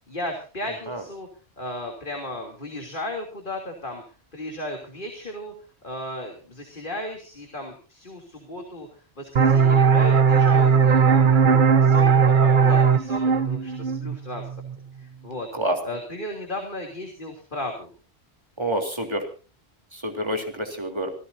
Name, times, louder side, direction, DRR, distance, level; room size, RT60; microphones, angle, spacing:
voice 1, 0.1-1.3 1.6-4.0 4.3-5.5 5.8-8.9 9.2-14.5 15.0-15.5 15.8-17.9, left 1 dB, 50° left, 2 dB, 3.4 m, -35 dB
sound 1, 9.4-14.8, right 6 dB, 50° right, 1.0 m, -18 dB
voice 2, 18.6-19.2 20.0-21.1, right 1 dB, 25° right, 4 dB, 3.5 m, -27 dB
27.0 x 16.5 x 2.8 m, 0.36 s
omnidirectional pair, 1.1 m